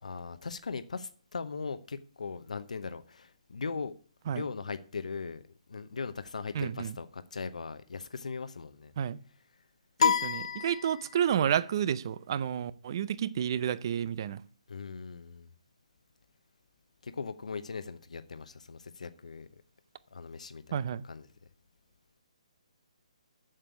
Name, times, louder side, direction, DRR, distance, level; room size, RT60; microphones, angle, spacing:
voice 1, 0.0-3.9 4.3-5.4 5.7-8.9 14.7-15.5 17.0-19.5 20.1-21.3, left 5 dB, 85° left, 0.8 m, -39 dB
voice 2, 6.5-6.9 9.0-9.2 10.0-14.4 20.7-21.0, right 9 dB, 40° right, 0.5 m, -30 dB
sound 1, 10.0-11.4, left 7 dB, 65° left, 0.4 m, -29 dB
7.5 x 6.8 x 8.1 m
hypercardioid pair, 165°, 4 cm